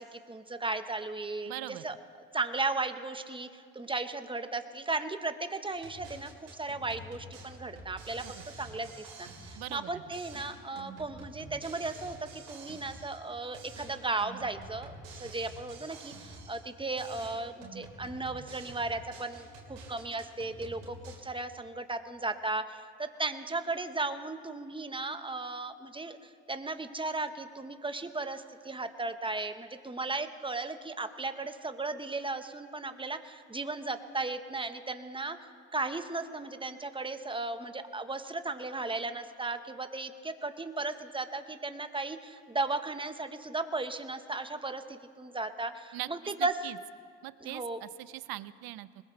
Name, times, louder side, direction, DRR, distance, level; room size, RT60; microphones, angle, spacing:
voice 1, 0.0-1.9 2.3-8.2 8.6-8.9 9.2-14.9 15.2-21.0 21.2-35.4 35.7-46.5 47.4-47.8, right 3 dB, 15° right, 9 dB, 1.1 m, -36 dB
voice 2, 1.4-1.8 8.2-8.4 9.6-10.0 45.9-46.1 46.4-46.8 47.2-49.0, right 16 dB, 65° right, 17 dB, 0.7 m, -41 dB
sound 1, 5.7-9.9 10.1-13.3 13.5-16.7 17.0-21.2, right 3 dB, 80° right, 3.1 m, -48 dB
21.0 x 20.5 x 3.3 m, 2.1 s
hypercardioid pair, 55°, 39 cm